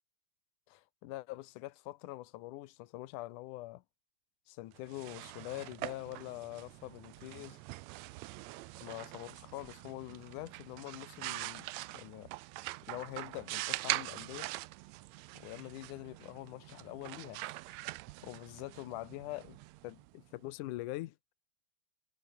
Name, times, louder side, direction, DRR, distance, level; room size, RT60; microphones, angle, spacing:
voice 1, 0.7-3.8 4.5-7.6 8.8-12.3 12.8-14.5 15.4-17.4 17.7-17.8 18.2-19.6 19.8-21.2, left 17 dB, 80° left, 2.4 m, -44 dB
sound 1, 4.8-20.4, right 19 dB, 80° right, 1.6 m, -43 dB
omnidirectional pair, 3.7 m